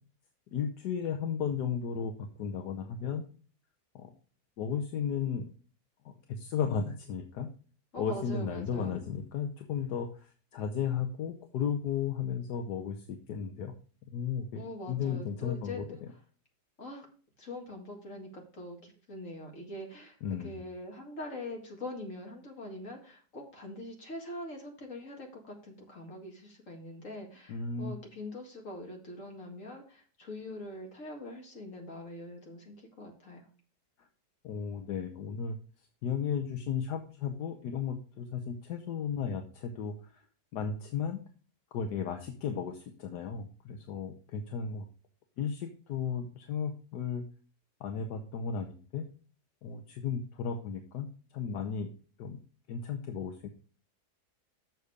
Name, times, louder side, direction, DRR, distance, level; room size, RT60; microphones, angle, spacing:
voice 1, 0.5-2.1 2.4-3.3 3.9-4.1 4.6-5.5 6.0-7.5 8.0-13.7 14.1-14.6 14.9-15.8 20.2-20.6 27.5-27.9 34.4-35.6 36.0-40.2 40.5-41.2 41.7-44.9 45.4-47.2 47.8-49.1 49.6-51.1 51.3-51.9 52.2-52.4 52.7-53.5, left 7 dB, 75° left, 5 dB, 1.4 m, -34 dB
voice 2, 7.9-9.0 14.5-16.0 16.8-17.1 17.4-33.5, left 1 dB, 50° left, 2 dB, 2.3 m, -43 dB
7.0 x 6.6 x 4.9 m, 0.39 s
omnidirectional pair, 1.8 m